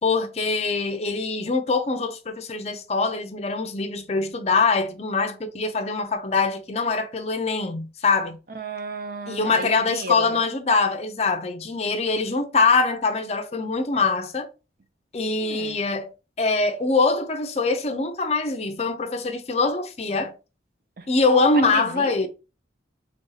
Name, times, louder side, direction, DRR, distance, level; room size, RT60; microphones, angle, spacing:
voice 1, 0.0-8.4 9.3-14.5 15.1-16.1 16.4-20.3 21.1-22.3, left 4 dB, 35° left, 0.5 m, -23 dB
voice 2, 8.5-10.4 15.4-15.8 21.0-21.1 21.6-22.3, right 1 dB, 50° right, 0.5 m, -33 dB
3.5 x 2.7 x 3.9 m
head